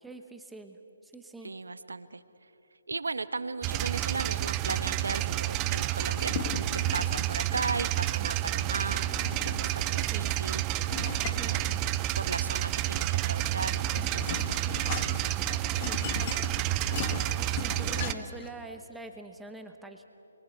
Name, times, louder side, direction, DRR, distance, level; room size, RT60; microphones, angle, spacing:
voice 1, 0.0-1.6 10.0-10.4 11.4-11.6 15.7-16.0 17.6-20.0, right 2 dB, 5° right, 5 dB, 1.1 m, -45 dB
voice 2, 1.4-2.2 2.9-9.1 9.4-10.6 11.5-11.7 12.2-14.8, right 3 dB, 80° right, 12 dB, 1.3 m, -36 dB
sound 1, 3.6-18.1, right 14 dB, 20° right, 0.6 m, -30 dB
sound 2, 6.0-7.4 8.8-9.8 10.9-12.2 13.4-18.5, left 7 dB, 30° left, 1.8 m, -39 dB
28.5 x 23.5 x 8.3 m, 2.9 s
figure-of-eight pair, 150°, 0 cm